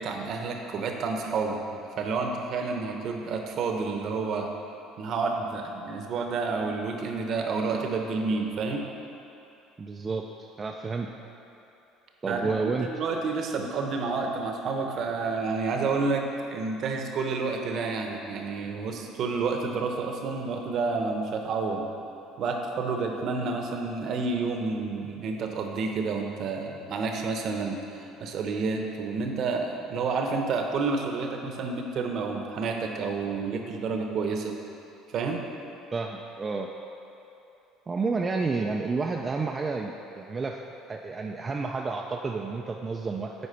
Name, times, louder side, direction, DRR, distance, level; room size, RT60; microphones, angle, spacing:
voice 1, 0.0-4.5 5.0-8.9 12.3-12.5 12.8-21.9 22.4-34.5 35.1-35.4, right 4 dB, 50° right, 3 dB, 0.9 m, -29 dB
voice 2, 9.8-10.2 10.6-11.1 12.2-12.9 13.6-13.7 35.9-36.7 37.9-40.6 40.9-43.3, right 4 dB, 25° right, 1 dB, 0.4 m, -30 dB
8.3 x 4.4 x 5.8 m, 2.8 s
cardioid pair, 125°, 0 cm